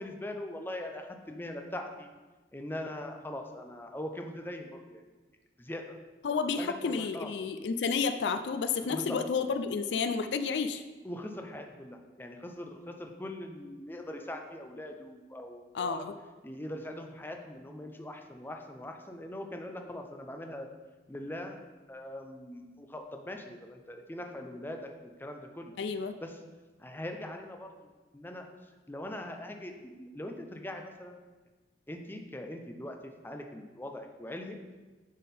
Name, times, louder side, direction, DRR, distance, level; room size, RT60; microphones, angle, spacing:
voice 1, 0.0-2.1 2.5-5.0 5.6-5.9 6.6-7.3 8.9-9.2 11.0-16.0 16.4-20.7 21.1-21.6 21.9-24.9 25.2-25.7 26.2-26.3 26.8-27.7 28.1-28.4 28.9-31.2 31.9-33.0 33.2-34.6, left 1 dB, 10° left, 4 dB, 0.5 m, -41 dB
voice 2, 6.2-10.8 15.7-16.1 25.8-26.1, left 5 dB, 75° left, 10 dB, 0.4 m, -31 dB
9.6 x 3.6 x 4.2 m, 1.3 s
head